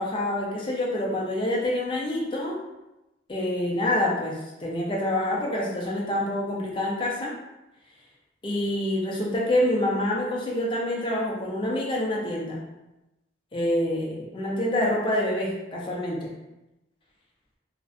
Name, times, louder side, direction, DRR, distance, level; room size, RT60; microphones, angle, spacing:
voice 1, 0.0-2.6 3.3-7.3 8.4-12.6 13.5-16.3, left 1 dB, 25° left, -2 dB, 0.4 m, -27 dB
2.4 x 2.1 x 2.4 m, 0.97 s
head